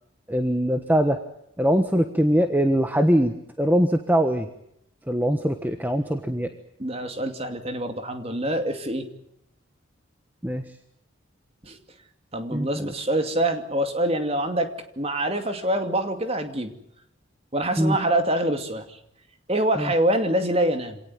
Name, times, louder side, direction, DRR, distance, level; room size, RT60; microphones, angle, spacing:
voice 1, 0.3-1.2 1.6-4.5 5.1-6.5 10.4-10.6 12.5-12.8 17.8-18.0 19.8-19.9, equal, 10° right, 7 dB, 1.3 m, -22 dB
voice 2, 6.8-9.1 11.6-11.8 12.3-14.7 15.0-16.7 17.5-19.0 19.5-21.0, right 1 dB, 30° right, 7 dB, 2.5 m, -25 dB
26.5 x 18.5 x 9.2 m, 0.75 s
head